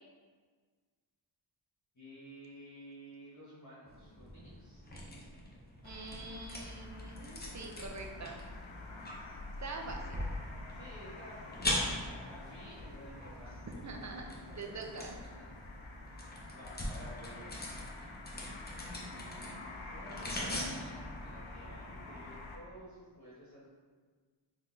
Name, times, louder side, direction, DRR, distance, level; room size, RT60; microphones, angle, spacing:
voice 1, 1.9-4.8 10.7-11.8 12.2-13.7 14.9-15.6 16.0-17.5 18.2-23.7, equal, 40° left, -9 dB, 1.1 m, -53 dB
sound 1, 3.9-22.4, left 1 dB, 20° left, 0.7 m, -43 dB
sound 2, 5.8-22.6, left 2 dB, 85° left, 0.6 m, -48 dB
voice 2, 5.8-8.4 9.6-10.2 13.6-14.3 14.6-15.1, right 3 dB, 40° right, 2 dB, 0.5 m, -44 dB
3.9 x 3.3 x 2.6 m, 1.5 s
wide cardioid pair, 70°, 46 cm